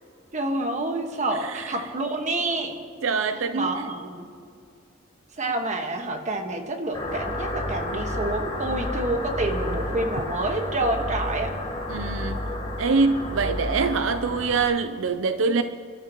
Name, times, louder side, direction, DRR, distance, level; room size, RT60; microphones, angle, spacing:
voice 1, 0.3-2.8 3.5-4.3 5.4-11.5, right 2 dB, 40° right, 4 dB, 1.6 m, -28 dB
voice 2, 1.3-1.8 3.0-3.8 11.9-12.4 12.8-15.6, right 4 dB, 80° right, 10 dB, 0.6 m, -24 dB
sound 1, 6.9-14.6, left 1 dB, 20° left, 4.4 m, -31 dB
30.0 x 13.0 x 3.1 m, 2.3 s
head